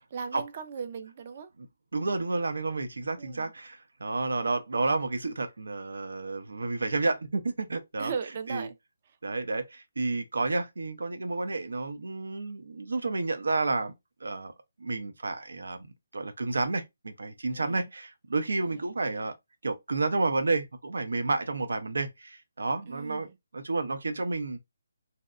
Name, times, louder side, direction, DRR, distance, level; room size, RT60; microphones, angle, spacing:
voice 1, 0.1-1.5 3.2-3.5 8.0-8.7 17.5-17.9 18.6-18.8 22.9-23.4, right 6 dB, 35° right, 0.3 m, -38 dB
voice 2, 1.9-8.1 8.5-8.7 9.2-13.9 14.2-14.5 14.8-19.3 19.6-23.3 23.5-24.6, right 3 dB, 85° right, 0.5 m, -30 dB
2.7 x 2.1 x 2.3 m
hypercardioid pair, 170°, 0 cm